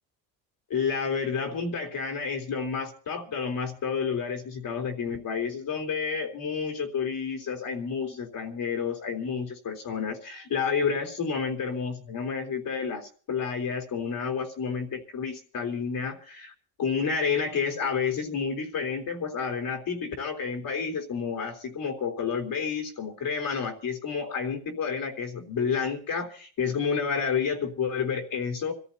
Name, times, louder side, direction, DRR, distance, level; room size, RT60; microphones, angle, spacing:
voice 1, 0.7-16.5 16.8-28.7, left 6 dB, 45° left, 3 dB, 3.7 m, -30 dB
26.0 x 14.5 x 2.8 m, 0.43 s
cardioid pair, 105°, 46 cm